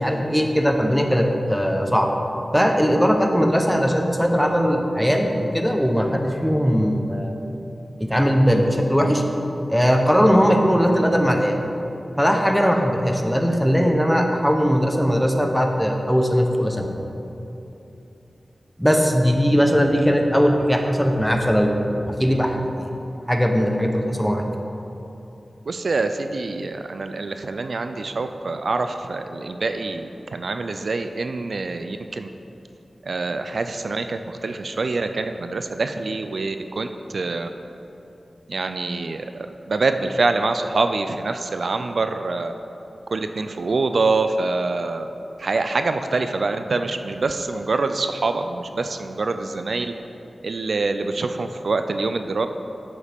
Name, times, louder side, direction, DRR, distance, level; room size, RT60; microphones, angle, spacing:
voice 1, 0.0-2.1 2.5-7.4 8.0-9.2 9.7-11.6 12.2-17.0 18.8-22.9 23.3-24.4, equal, ahead, 3 dB, 0.8 m, -19 dB
voice 2, 25.7-32.3 33.0-36.9 37.1-37.5 38.5-42.5 43.1-45.1 45.4-49.9 50.4-52.5, right 3 dB, 70° right, 8 dB, 0.4 m, -25 dB
10.5 x 7.3 x 3.5 m, 3.0 s
wide cardioid pair, 90°, 0 cm